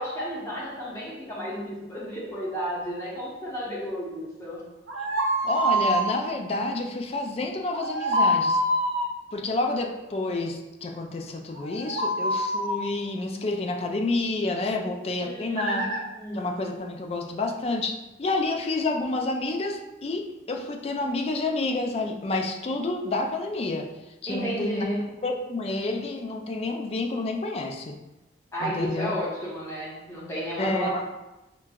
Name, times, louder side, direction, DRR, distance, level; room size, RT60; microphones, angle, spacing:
voice 1, 0.0-4.6 15.2-15.8 16.1-16.7 24.3-25.0 28.5-31.0, equal, 15° left, -7 dB, 0.8 m, -32 dB
sound 1, 4.9-6.1 7.7-9.1 11.6-12.8 15.6-16.0, equal, 90° right, 0.6 m, -25 dB
voice 2, 5.4-8.6 9.3-15.9 16.3-23.9 24.2-24.9 25.2-28.0 28.6-29.1 30.6-31.0, left 2 dB, 35° left, 3 dB, 0.3 m, -29 dB
5.6 x 2.2 x 2.3 m, 1.0 s
head